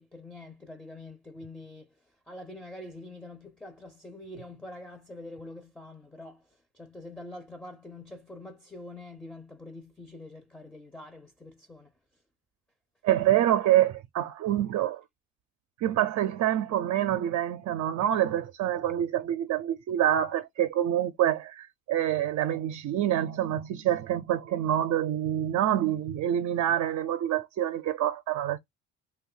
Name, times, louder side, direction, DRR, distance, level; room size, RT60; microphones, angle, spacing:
voice 1, 0.0-2.0 2.3-11.9, left 2 dB, 5° left, 0.6 m, -45 dB
voice 2, 13.0-15.0 15.8-28.6, right 12 dB, 65° right, 0.5 m, -26 dB
2.6 x 2.3 x 3.8 m
cardioid pair, 90°, 30 cm